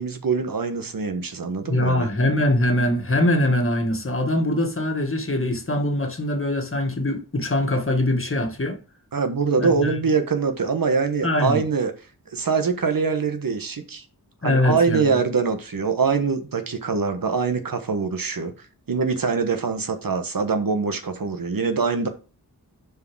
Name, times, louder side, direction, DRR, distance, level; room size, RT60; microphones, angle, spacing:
voice 1, 0.0-2.1 9.1-11.9 12.3-14.0 14.4-18.5 18.9-22.1, right 5 dB, 60° right, 1.4 m, -23 dB
voice 2, 1.6-8.8 9.6-9.9 11.2-11.6 14.4-15.2, left 1 dB, 35° left, 1.8 m, -22 dB
6.7 x 4.9 x 6.2 m
wide cardioid pair, 95°, 38 cm